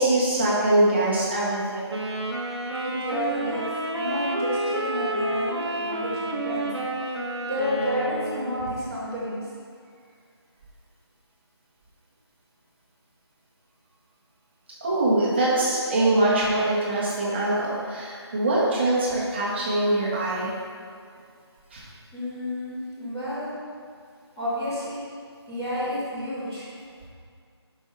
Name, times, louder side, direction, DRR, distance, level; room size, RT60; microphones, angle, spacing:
voice 1, 0.0-2.0 14.8-20.5 21.7-21.8, right 2 dB, 25° right, -6 dB, 1.3 m, -23 dB
Wind instrument woodwind instrument, 1.9-8.8, right 1 dB, 70° right, 1.0 m, -30 dB
voice 2, 2.8-3.7 3.9-7.2 7.4-9.5 15.2-15.8 22.1-23.6 24.4-25.0 25.5-26.7, left 1 dB, 5° left, -18 dB, 0.5 m, -31 dB
5.4 x 5.1 x 5.1 m, 2.2 s
figure-of-eight pair, 165°, 14 cm